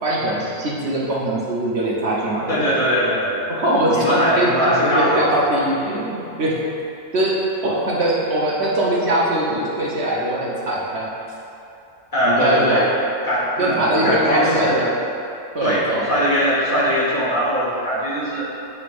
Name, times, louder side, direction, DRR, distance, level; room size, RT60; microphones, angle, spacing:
voice 1, 0.0-2.8 3.5-6.6 7.1-11.1 12.2-12.8 13.6-14.9 15.5-16.1, right 1 dB, 60° right, -5 dB, 1.0 m, -21 dB
voice 2, 2.5-3.4 3.9-5.5 12.1-12.9 13.2-14.8 15.6-18.4, equal, 40° left, -9 dB, 1.5 m, -20 dB
7.6 x 5.5 x 2.5 m, 2.8 s
omnidirectional pair, 1.3 m